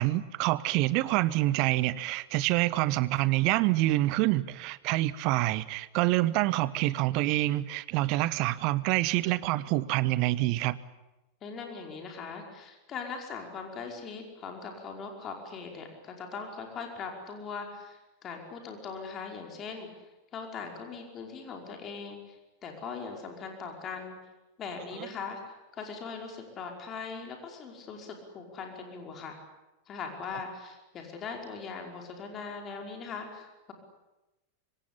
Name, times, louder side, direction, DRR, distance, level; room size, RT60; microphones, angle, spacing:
voice 1, 0.0-10.8 25.0-25.1, right 17 dB, 45° right, 18 dB, 1.1 m, -27 dB
voice 2, 11.4-19.9 20.3-24.2 24.6-25.4 25.7-29.4 29.9-33.7, left 5 dB, 30° left, 2 dB, 5.2 m, -40 dB
26.0 x 24.5 x 8.7 m, 1.0 s
figure-of-eight pair, 90°, 0 cm